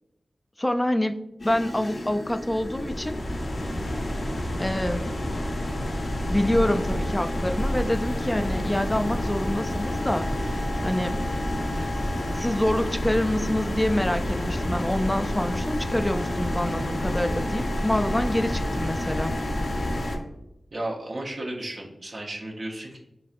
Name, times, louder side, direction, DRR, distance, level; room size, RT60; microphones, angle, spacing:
voice 1, 0.6-3.2 4.6-5.1 6.3-10.4 10.8-11.2 12.4-19.3, left 1 dB, 15° left, 8 dB, 0.3 m, -26 dB
sound 1, 1.4-20.2, left 1 dB, 55° left, 0.6 m, -29 dB
voice 2, 20.7-23.0, right 1 dB, 55° right, -1 dB, 0.7 m, -34 dB
4.1 x 3.3 x 2.4 m, 0.89 s
wide cardioid pair, 60°, 0 cm